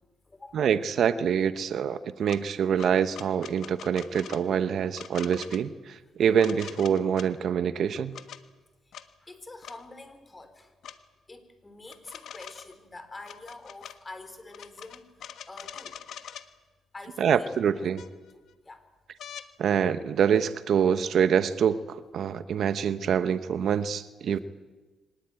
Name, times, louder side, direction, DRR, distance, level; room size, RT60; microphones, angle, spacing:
voice 1, 0.0-0.7 4.5-4.6 8.9-9.0 9.2-10.7 11.3-16.1 16.9-17.9 18.3-18.9, left 2 dB, 20° left, 10 dB, 3.9 m, -47 dB
voice 2, 0.5-8.2 17.2-18.0 19.6-24.4, right 8 dB, 65° right, 12 dB, 1.1 m, -25 dB
sound 1, 2.3-2.4 2.8-4.4 4.9-5.6 6.4-7.3 7.9-8.4 8.9-9.1 9.6-9.8 10.8-11.0 11.9-12.7 13.2-14.0 14.5-16.5 17.5-17.6 18.0-18.5 19.2-19.5 21.0-21.2, left 9 dB, 70° left, 1.4 m, -43 dB
24.0 x 19.5 x 9.1 m, 1.2 s
cardioid pair, 90°, 0 cm